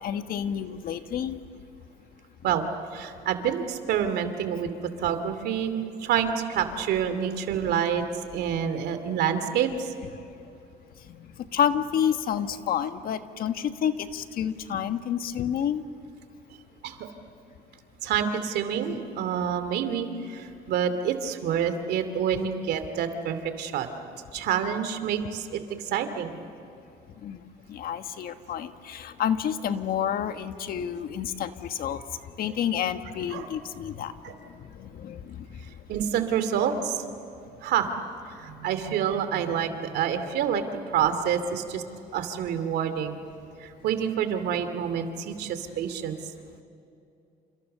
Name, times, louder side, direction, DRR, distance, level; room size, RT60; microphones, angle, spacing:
voice 1, 0.0-1.4 11.5-15.8 27.2-27.4 27.7-32.0 32.4-34.1 34.8-35.4, left 9 dB, 60° left, 9 dB, 1.4 m, -29 dB
voice 2, 2.9-4.7 5.0-8.0 8.3-9.9 16.8-17.1 18.0-23.9 24.3-26.3 33.3-33.5 34.2-34.3 35.9-37.0 37.6-37.9 38.3-40.6 40.9-41.8 42.1-43.2 43.6-46.2, right 8 dB, 75° right, 9 dB, 2.6 m, -27 dB
29.0 x 28.0 x 6.8 m, 2.7 s
cardioid pair, 110°, 17 cm